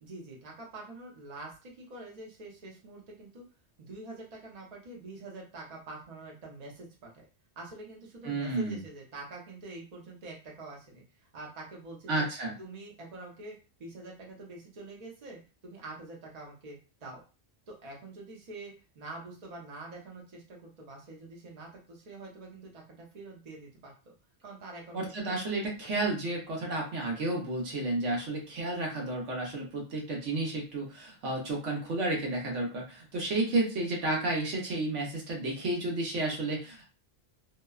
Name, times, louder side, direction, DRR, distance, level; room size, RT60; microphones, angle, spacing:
voice 1, 0.0-3.4 3.8-7.2 7.6-12.3 12.6-17.2 17.7-24.1 24.4-25.0 25.3-25.4 25.8-25.9, right 2 dB, 40° right, -2 dB, 0.7 m, -46 dB
voice 2, 8.2-8.8 12.1-12.5 24.9-36.9, right 2 dB, 75° right, -1 dB, 1.2 m, -31 dB
2.8 x 2.1 x 2.3 m, 0.33 s
omnidirectional pair, 1.3 m